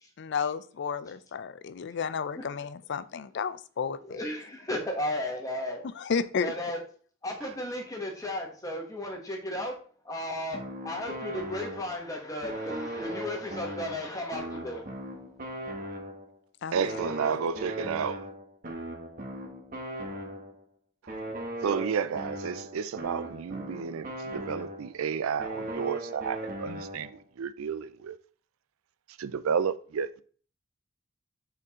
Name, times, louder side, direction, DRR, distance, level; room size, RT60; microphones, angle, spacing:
voice 1, 0.2-4.3 5.8-6.5 16.6-16.7, left 6 dB, 55° left, 0.4 m, -32 dB
voice 2, 4.1-5.8 6.4-6.8 7.2-9.7 10.0-14.8, left 1 dB, 15° left, 1.4 m, -34 dB
sound 1, 10.5-12.1 12.4-16.4 16.7-20.6 21.1-25.0 25.4-27.2, right 1 dB, 40° right, 1.2 m, -38 dB
voice 3, 16.7-18.3 21.6-28.2 29.2-30.2, right 6 dB, 85° right, 0.4 m, -31 dB
6.3 x 4.5 x 3.7 m
head